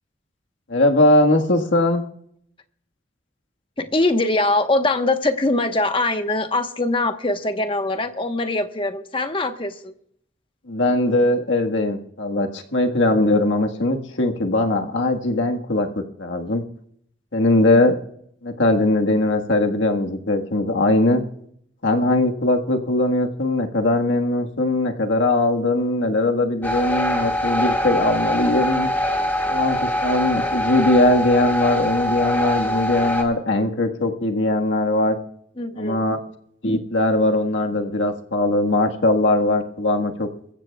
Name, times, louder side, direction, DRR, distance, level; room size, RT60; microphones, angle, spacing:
voice 1, 0.7-2.0 10.7-16.6 17.3-18.0 18.4-21.2 21.8-28.9 29.5-35.2 35.8-36.2 36.6-40.3, left 2 dB, 85° left, 3 dB, 1.6 m, -20 dB
voice 2, 3.8-9.9 35.6-36.1, left 2 dB, 30° left, 7 dB, 1.1 m, -22 dB
sound 1, 26.6-33.2, equal, 10° left, 1.8 m, -23 dB
22.5 x 15.0 x 2.3 m, 0.68 s
head